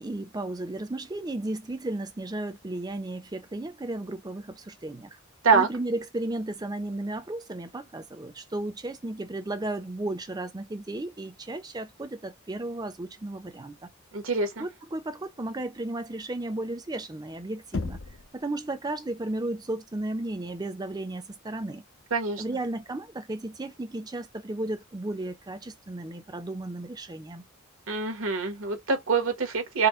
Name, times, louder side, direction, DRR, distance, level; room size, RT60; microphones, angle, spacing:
voice 1, 0.0-5.2 5.5-13.9 14.6-18.0 18.3-21.8 22.4-27.4, right 2 dB, 20° right, 0.5 m, -34 dB
voice 2, 14.1-14.6 22.1-22.4 27.9-29.9, right 5 dB, 75° right, 1.1 m, -25 dB
Knock, 17.7-18.4, left 3 dB, 70° left, 0.6 m, -33 dB
4.1 x 2.1 x 3.6 m
head